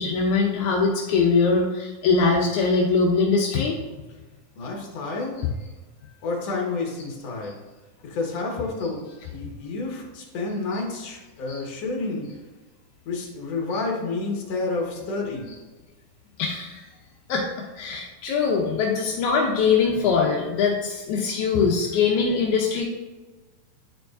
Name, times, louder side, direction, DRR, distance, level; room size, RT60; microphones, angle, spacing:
voice 1, 0.0-3.8 5.4-5.5 8.8-8.9 9.2-9.3 10.7-10.8 11.5-11.6 13.7-13.8 15.5-15.6 16.4-16.8 17.3-17.5 17.7-22.8, left 5 dB, 80° left, -1 dB, 1.7 m, -22 dB
voice 2, 4.6-5.4 6.2-7.5 8.0-9.0 9.3-12.3 13.1-15.5, left 3 dB, 55° left, -1 dB, 2.0 m, -29 dB
10.0 x 4.6 x 2.6 m, 1.2 s
omnidirectional pair, 4.2 m